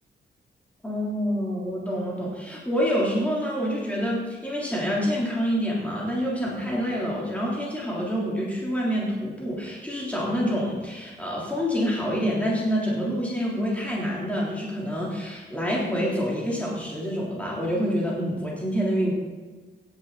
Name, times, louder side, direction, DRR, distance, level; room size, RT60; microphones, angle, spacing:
voice 1, 0.8-19.1, equal, 5° left, -5 dB, 3.5 m, -27 dB
16.5 x 10.5 x 4.2 m, 1.4 s
wide cardioid pair, 165°, 19 cm